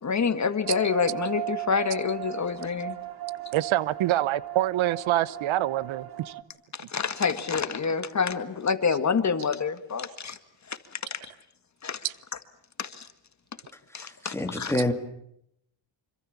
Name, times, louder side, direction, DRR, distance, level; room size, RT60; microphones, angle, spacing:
voice 1, 0.0-3.0 6.7-10.4 10.7-11.2 11.8-12.0 12.8-13.1 13.9-14.7, left 5 dB, 35° left, 1.9 m, -27 dB
sound 1, 0.6-6.4, right 17 dB, 50° right, 1.9 m, -37 dB
voice 2, 3.5-6.3 12.0-12.1, right 14 dB, 85° right, 1.0 m, -26 dB
voice 3, 14.0-14.9, left 1 dB, 5° left, 2.9 m, -28 dB
26.5 x 24.5 x 7.2 m
cardioid pair, 120°, 46 cm